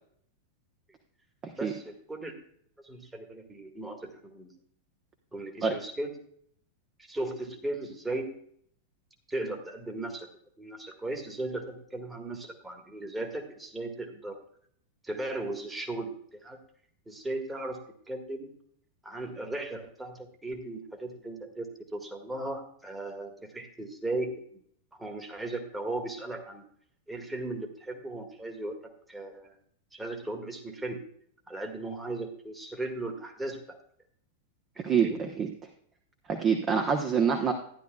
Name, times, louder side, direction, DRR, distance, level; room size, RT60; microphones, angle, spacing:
voice 1, 1.6-2.4 2.8-4.5 5.3-6.1 7.0-8.3 9.3-10.3 10.6-14.4 15.0-16.6 17.1-17.8 18.1-18.6 19.0-24.3 24.9-26.6 27.1-29.5 29.9-31.0 31.5-33.8 35.0-35.2, right 2 dB, 10° right, 4 dB, 1.6 m, -37 dB
voice 2, 34.8-35.5 36.3-37.5, right 6 dB, 30° right, 4 dB, 1.0 m, -26 dB
13.0 x 10.5 x 2.3 m, 0.65 s
figure-of-eight pair, 95°, 0 cm